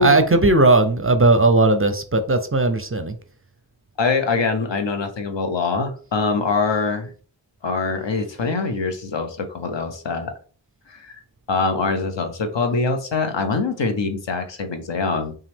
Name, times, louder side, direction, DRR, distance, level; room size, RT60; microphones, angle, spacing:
voice 1, 0.0-3.1, right 2 dB, 30° right, 9 dB, 0.5 m, -17 dB
voice 2, 4.0-7.1 7.6-10.3 10.9-11.2 11.5-15.3, left 4 dB, 70° left, 6 dB, 0.9 m, -23 dB
5.7 x 2.4 x 3.5 m, 0.41 s
wide cardioid pair, 90°, 46 cm